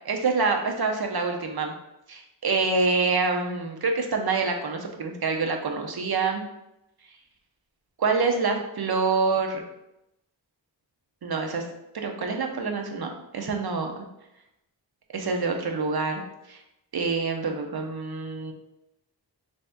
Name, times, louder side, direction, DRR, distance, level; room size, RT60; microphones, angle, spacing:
voice 1, 0.1-1.7 2.1-6.4 8.0-9.6 11.2-11.6 11.9-14.0 15.1-16.2 16.5-16.6 16.9-18.5, right 4 dB, 55° right, 3 dB, 0.7 m, -26 dB
3.5 x 2.7 x 3.4 m, 0.88 s
wide cardioid pair, 55°, 44 cm